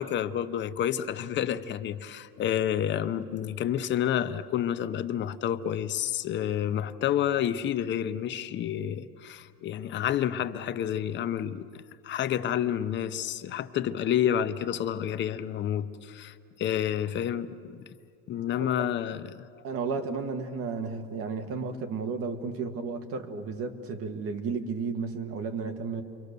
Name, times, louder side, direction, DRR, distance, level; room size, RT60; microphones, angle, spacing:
voice 1, 0.0-17.8 18.3-19.6, left 10 dB, 35° left, 0.7 m, -29 dB
voice 2, 19.6-26.0, right 4 dB, 50° right, 1.7 m, -33 dB
29.0 x 23.5 x 6.8 m
cardioid pair, 155°, 31 cm